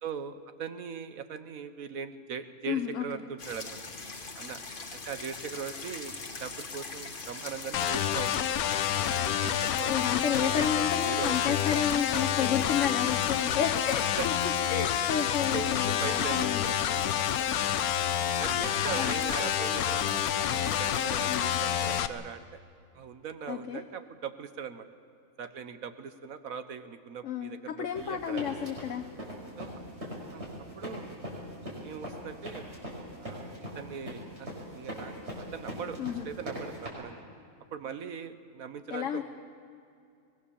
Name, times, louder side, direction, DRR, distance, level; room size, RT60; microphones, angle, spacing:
voice 1, 0.0-3.8 4.4-4.6 4.9-6.1 6.4-8.3 8.9-11.6 12.1-12.6 14.2-14.3 15.5-16.8 17.2-17.5 18.0-22.6 22.9-24.9 25.4-28.6 29.6-29.8 30.3-31.1 31.8-32.7 33.2-36.0 36.2-37.2 37.7-39.2, right 7 dB, 70° right, 10 dB, 1.5 m, -40 dB
voice 2, 2.7-3.2 9.9-16.7 18.9-19.1 21.3-21.5 23.5-23.8 27.2-29.0 36.0-36.3 38.9-39.2, left 8 dB, 60° left, 3 dB, 1.3 m, -31 dB
sound 1, 3.4-22.0, left 3 dB, 40° left, 1.5 m, -42 dB
sound 2, 7.7-22.1, left 10 dB, 85° left, 1.2 m, -28 dB
sound 3, 28.0-36.9, equal, 50° right, 5.8 m, -40 dB
23.0 x 20.0 x 7.1 m, 2.5 s
omnidirectional pair, 1.5 m